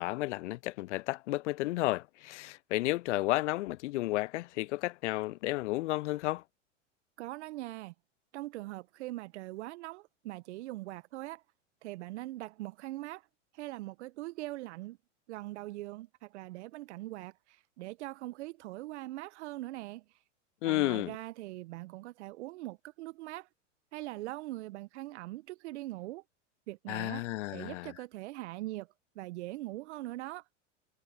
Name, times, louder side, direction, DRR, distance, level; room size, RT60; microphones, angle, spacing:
voice 1, 0.0-6.4 20.6-21.1 26.9-27.9, left 18 dB, 70° left, 0.5 m, -32 dB
voice 2, 7.2-7.9 8.3-11.4 11.8-13.2 13.5-15.0 15.3-20.0 20.6-23.5 23.9-26.2 26.7-27.3 27.5-28.9 29.1-30.4, right 18 dB, 65° right, 1.3 m, -42 dB
hypercardioid pair, 100°, 37 cm